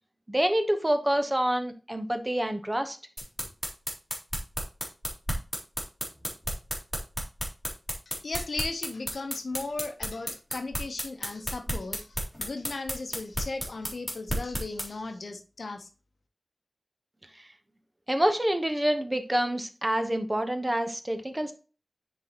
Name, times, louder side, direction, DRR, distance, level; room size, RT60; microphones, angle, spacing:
voice 1, 0.3-3.0 18.1-21.5, right 1 dB, 20° right, 0.9 m, -27 dB
sound 1, 3.2-14.9, equal, 5° left, 2.3 m, -32 dB
voice 2, 8.2-15.9, left 3 dB, 85° left, 0.8 m, -36 dB
9.6 x 4.0 x 2.9 m
wide cardioid pair, 75°, 0 cm